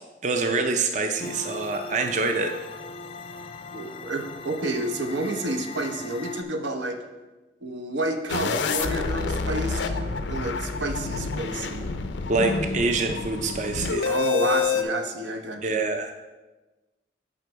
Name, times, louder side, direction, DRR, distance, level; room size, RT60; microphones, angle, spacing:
voice 1, 0.2-2.5 12.3-14.1 15.6-16.1, right 3 dB, 40° right, 5 dB, 0.5 m, -25 dB
sound 1, 1.2-6.4, left 3 dB, 30° left, 0.3 m, -39 dB
voice 2, 3.7-7.0 7.6-11.9 14.0-15.8, right 2 dB, 85° right, 5 dB, 0.8 m, -30 dB
sound 2, 8.3-14.8, left 5 dB, 85° left, 0.5 m, -28 dB
8.0 x 5.1 x 4.6 m, 1.2 s
head